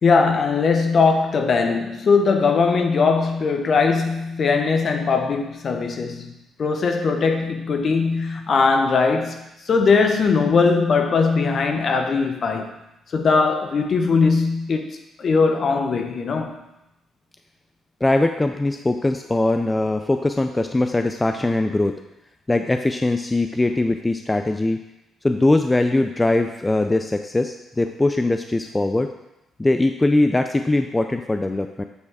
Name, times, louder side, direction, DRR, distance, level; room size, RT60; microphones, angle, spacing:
voice 1, 0.0-6.3 6.6-12.7 13.1-16.6, left 4 dB, 50° left, 5 dB, 0.9 m, -20 dB
voice 2, 18.0-21.9 22.5-24.8 25.2-29.1 29.6-31.8, left 2 dB, 15° left, 6 dB, 0.3 m, -21 dB
8.1 x 3.4 x 4.8 m, 0.90 s
cardioid pair, 90°, 0 cm